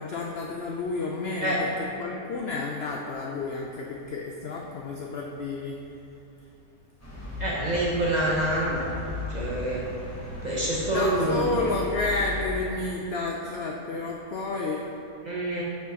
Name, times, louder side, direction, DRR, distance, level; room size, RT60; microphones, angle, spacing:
voice 1, 0.0-5.8 10.8-14.9, left 3 dB, 80° left, -1 dB, 0.5 m, -31 dB
sound 1, 7.0-12.5, left 1 dB, 10° left, 1.1 m, -36 dB
voice 2, 7.4-8.9 9.3-9.8 10.4-11.5 15.3-15.6, right 1 dB, 40° right, -5 dB, 0.7 m, -26 dB
5.0 x 4.6 x 5.2 m, 2.8 s
omnidirectional pair, 1.6 m